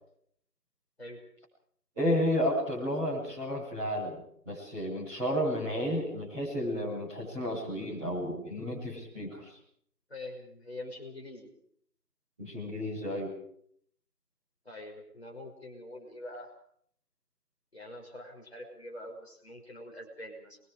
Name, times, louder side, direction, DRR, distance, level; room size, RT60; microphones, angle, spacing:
voice 1, 1.9-9.6 12.4-13.3, equal, 5° right, -20 dB, 5.0 m, -32 dB
voice 2, 10.1-11.5 14.6-16.5 17.7-20.6, left 1 dB, 40° left, 2 dB, 5.9 m, -44 dB
28.5 x 23.0 x 5.1 m, 0.66 s
figure-of-eight pair, 180°, 47 cm